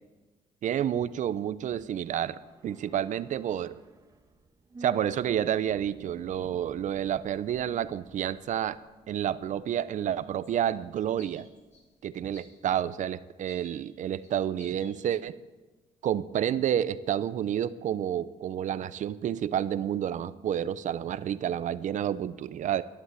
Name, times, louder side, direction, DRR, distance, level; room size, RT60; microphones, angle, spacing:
voice 1, 0.6-3.7 4.8-8.8 9.1-11.5 12.0-15.4 16.0-22.8, right 10 dB, 55° right, 15 dB, 0.6 m, -30 dB
sound 1, 1.3-11.8 12.1-12.2, right 2 dB, 20° right, 1.2 m, -52 dB
sound 2, 10.1-10.2 10.4-10.8 11.2-11.8 12.3-12.7 13.5-13.8 14.2-14.3 14.6-15.2, left 2 dB, 45° left, 2.8 m, -55 dB
12.0 x 11.5 x 8.2 m, 1.2 s
cardioid pair, 135°, 15 cm